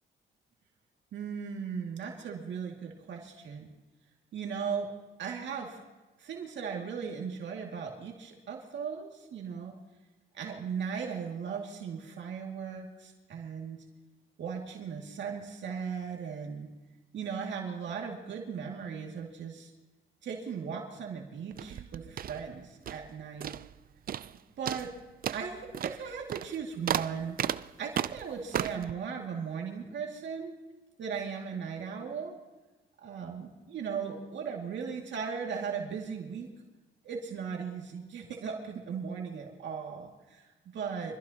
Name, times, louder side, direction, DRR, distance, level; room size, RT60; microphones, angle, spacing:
voice 1, 1.1-3.7 4.3-4.9 5.2-5.8 6.2-9.7 10.3-13.8 14.4-16.7 17.1-19.7 20.2-23.6 24.6-24.9 25.3-27.4 27.8-30.5 31.0-32.3 33.0-36.5 37.0-41.2, right 6 dB, 65° right, 0 dB, 2.3 m, -37 dB
sound 1, 21.5-23.1 23.4-23.8 24.1-24.4 24.7-28.9, right 10 dB, 45° right, 0.5 m, -35 dB
25.0 x 15.0 x 2.9 m, 1.2 s
cardioid pair, 90°, 20 cm